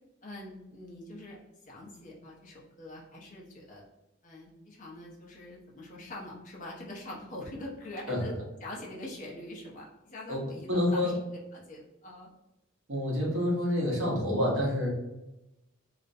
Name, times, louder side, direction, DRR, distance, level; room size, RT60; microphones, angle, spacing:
voice 1, 0.2-1.4 1.6-3.8 4.2-12.3 14.4-14.6, left 1 dB, 40° left, -3 dB, 0.5 m, -44 dB
voice 2, 10.7-11.1 12.9-14.9, left 1 dB, 65° right, -2 dB, 0.8 m, -28 dB
2.4 x 2.0 x 2.5 m, 0.94 s
head